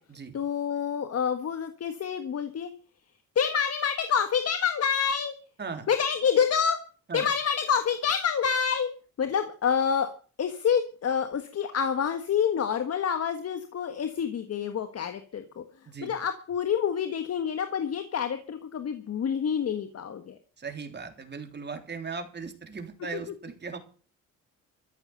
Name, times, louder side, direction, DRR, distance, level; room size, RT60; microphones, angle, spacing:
voice 1, 0.3-2.7 3.3-5.3 5.9-6.8 7.1-8.9 9.2-10.1 10.4-15.6 16.0-20.4 23.1-23.2, left 7 dB, 55° left, 8 dB, 1.6 m, -27 dB
voice 2, 20.6-23.8, right 5 dB, 35° right, 5 dB, 3.5 m, -38 dB
14.0 x 8.3 x 8.0 m, 0.40 s
cardioid pair, 90°, 30 cm